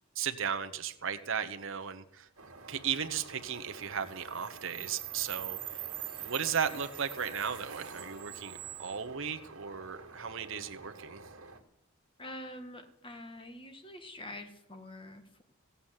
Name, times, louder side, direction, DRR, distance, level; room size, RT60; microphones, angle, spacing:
voice 1, 0.1-2.3 2.7-5.6 6.2-11.2, right 7 dB, 60° right, 8 dB, 1.0 m, -36 dB
sound 1, 2.4-11.6, right 9 dB, 85° right, 2.0 m, -44 dB
voice 2, 12.2-15.4, left 1 dB, 25° left, 7 dB, 1.6 m, -46 dB
15.5 x 8.5 x 7.4 m, 0.85 s
head